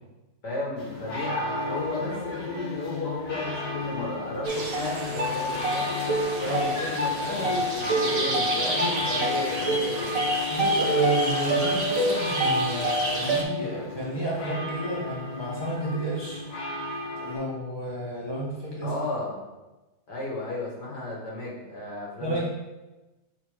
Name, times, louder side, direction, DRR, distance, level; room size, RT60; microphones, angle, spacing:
voice 1, 0.4-6.0 6.4-10.2 18.8-19.4 20.1-22.4, left 2 dB, 85° left, -4 dB, 2.4 m, -33 dB
sound 1, 0.8-17.4, left 2 dB, 65° left, 1.9 m, -35 dB
sound 2, 4.4-13.4, right 1 dB, 55° right, 1.5 m, -27 dB
voice 2, 10.5-16.4 17.2-18.9 22.2-22.4, right 2 dB, 15° right, -7 dB, 1.5 m, -30 dB
7.2 x 4.1 x 3.8 m, 1.1 s
omnidirectional pair, 1.7 m